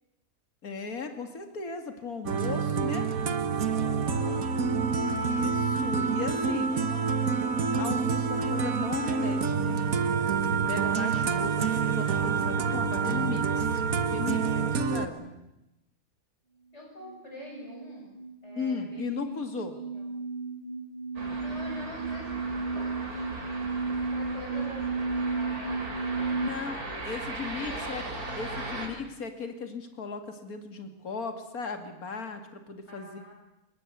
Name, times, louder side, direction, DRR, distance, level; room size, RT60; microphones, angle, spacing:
voice 1, 0.6-3.1 5.0-6.7 7.8-9.8 10.5-15.3 18.6-19.8 26.4-26.8 27.0-28.0 28.4-33.3, left 5 dB, 75° left, 7 dB, 2.7 m, -36 dB
sound 1, 2.3-15.1, right 5 dB, 70° right, 1.7 m, -27 dB
voice 2, 3.6-4.5 6.6-7.3 10.8-11.5 14.9-15.3 16.7-18.2 18.4-20.1 21.4-23.5 24.0-26.0 26.5-27.4 27.7-29.1 32.9-33.3, equal, 50° left, -1 dB, 7.8 m, -47 dB
sound 2, 17.0-26.5, right 4 dB, 40° right, 1.3 m, -34 dB
sound 3, 21.2-28.9, right 2 dB, 90° right, 4.2 m, -38 dB
25.5 x 20.5 x 8.1 m, 0.94 s
omnidirectional pair, 1.5 m